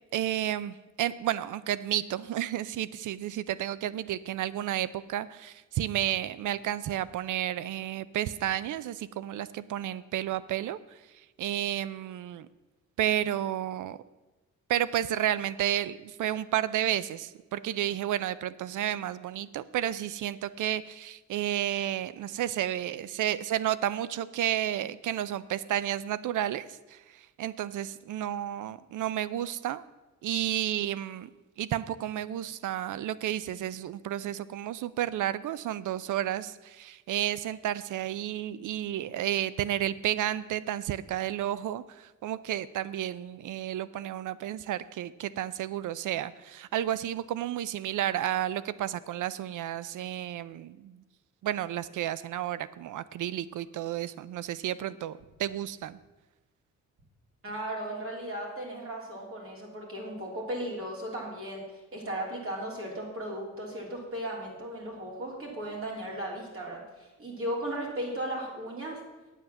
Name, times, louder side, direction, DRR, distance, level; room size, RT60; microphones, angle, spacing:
voice 1, 0.1-12.5 13.0-14.0 14.7-29.8 30.2-31.3 31.6-51.0 51.4-56.0, right 12 dB, 85° right, 17 dB, 0.5 m, -32 dB
voice 2, 57.4-61.6 61.9-69.0, right 1 dB, 45° right, -2 dB, 3.2 m, -36 dB
9.1 x 7.9 x 7.0 m, 1.1 s
wide cardioid pair, 125°, 30 cm